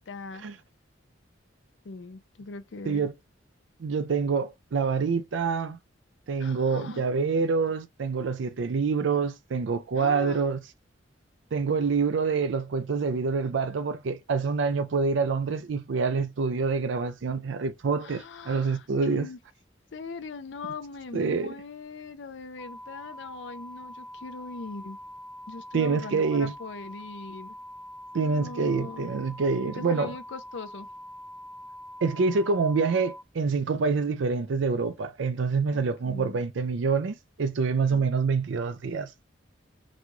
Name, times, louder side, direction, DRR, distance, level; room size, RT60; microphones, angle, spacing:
voice 1, 0.1-0.4 1.8-3.1 6.4-7.1 10.0-10.4 18.0-19.4 19.9-25.0 25.5-27.5 28.2-29.1 29.6-30.9 35.7-36.4 37.9-38.0, left 4 dB, 70° left, 0.5 m, -40 dB
voice 2, 3.8-5.8 6.3-10.6 11.5-19.3 21.1-21.5 25.7-26.5 28.1-30.1 32.0-39.1, right 4 dB, 75° right, 0.4 m, -26 dB
sound 1, 22.6-33.2, equal, ahead, 0.3 m, -44 dB
4.1 x 2.3 x 3.0 m
head